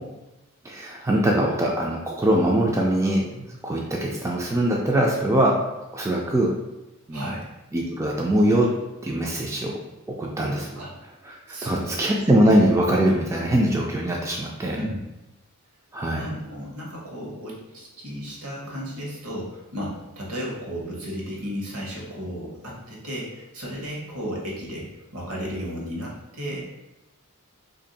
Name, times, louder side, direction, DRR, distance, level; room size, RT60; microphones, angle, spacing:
voice 1, 0.6-5.5 5.9-6.5 7.1-7.3 7.7-8.7 9.0-9.7 10.2-10.7 11.2-14.8 15.9-16.3, right 1 dB, 15° right, -2 dB, 0.3 m, -22 dB
voice 2, 7.1-7.5 10.8-10.9 11.5-12.0 14.7-15.1 16.1-26.7, equal, 70° right, -3 dB, 1.1 m, -34 dB
2.8 x 2.6 x 4.0 m, 0.97 s
head